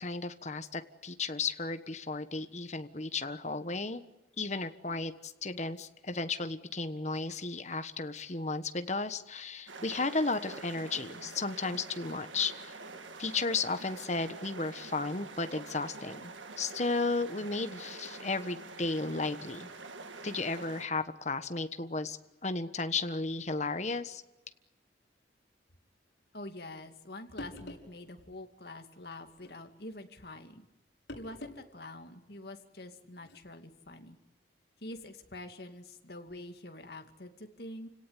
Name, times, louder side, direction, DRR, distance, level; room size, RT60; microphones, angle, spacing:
voice 1, 0.0-4.0 4.4-12.7 13.2-16.3 16.6-19.7 20.2-24.2, left 3 dB, 40° left, 9 dB, 1.3 m, -34 dB
sound 1, 9.7-20.9, right 3 dB, 90° right, 2.0 m, -46 dB
voice 2, 26.3-30.7 31.2-34.2 34.8-37.9, left 1 dB, 55° left, 5 dB, 2.4 m, -46 dB
sound 2, 27.0-27.1 27.4-27.9 29.3-29.6 31.1-31.6 32.0-32.1 33.2-33.4, left 1 dB, 75° left, 6.1 m, -45 dB
29.5 x 18.0 x 9.9 m, 0.99 s
head